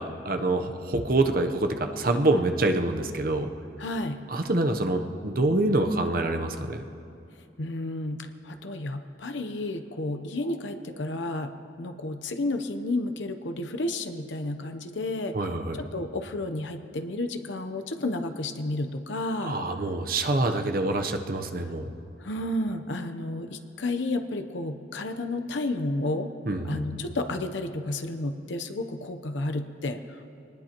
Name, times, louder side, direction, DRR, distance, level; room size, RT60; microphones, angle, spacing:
voice 1, 0.0-3.5 4.3-6.8 15.3-15.9 19.4-21.9 26.5-27.0, right 2 dB, 50° right, 6 dB, 0.9 m, -26 dB
voice 2, 3.8-4.2 7.6-11.5 11.8-15.4 15.8-19.6 22.2-26.3 26.6-30.2, left 2 dB, 85° left, 7 dB, 0.8 m, -31 dB
23.0 x 19.5 x 3.0 m, 2.7 s
head